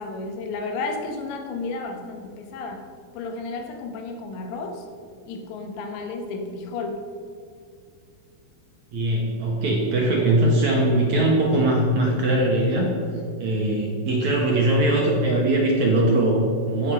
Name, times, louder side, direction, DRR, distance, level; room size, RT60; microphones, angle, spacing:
voice 1, 0.0-2.8 3.1-4.8 5.3-7.0, left 3 dB, 80° left, 4 dB, 3.5 m, -32 dB
voice 2, 8.9-12.9 13.4-16.9, right 1 dB, 60° right, -2 dB, 2.2 m, -21 dB
15.0 x 6.7 x 6.2 m, 2.3 s
omnidirectional pair, 5.0 m